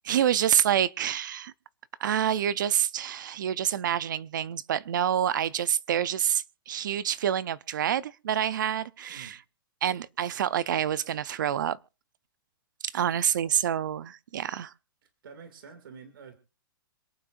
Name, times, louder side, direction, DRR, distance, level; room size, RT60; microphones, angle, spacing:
voice 1, 0.0-1.5 2.0-9.4 9.8-11.8 12.8-14.7, right 10 dB, 60° right, 0.5 m, -27 dB
voice 2, 9.1-9.4 15.0-16.4, right 6 dB, 75° right, 2.3 m, -48 dB
27.0 x 8.9 x 2.5 m
hypercardioid pair, 175°, 12 cm